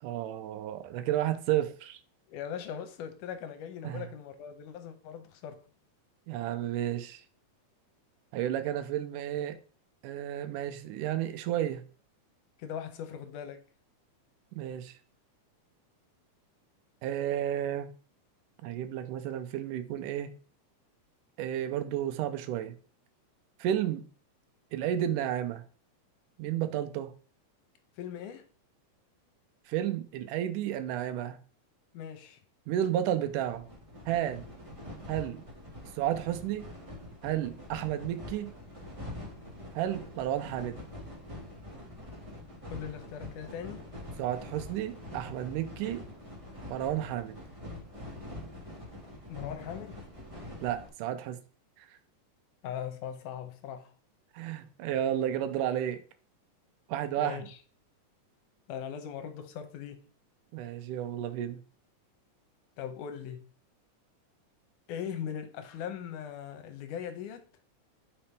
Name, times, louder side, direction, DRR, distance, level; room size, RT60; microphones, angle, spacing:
voice 1, 0.0-2.0 3.8-4.0 6.3-7.2 8.3-9.6 10.0-11.8 14.6-15.0 17.0-17.9 18.6-20.4 21.4-22.8 23.6-24.1 24.7-25.6 26.4-27.2 29.7-31.4 32.7-33.7 34.1-34.4 35.1-35.4 35.9-36.7 37.2-38.5 39.7-40.8 44.2-46.0 46.7-47.4 50.6-51.4 51.8-51.9 54.3-56.0 56.9-57.5 60.5-61.6, right 11 dB, 85° right, 2.2 m, -32 dB
voice 2, 2.3-5.6 12.6-13.6 28.0-28.4 31.9-32.4 42.7-43.9 49.3-50.0 52.6-53.9 57.2-57.6 58.7-60.0 62.8-63.5 64.9-67.5, left 8 dB, 80° left, 2.3 m, -40 dB
sound 1, 33.2-50.9, left 1 dB, 25° right, 0.7 m, -45 dB
5.8 x 5.2 x 3.4 m
omnidirectional pair, 3.7 m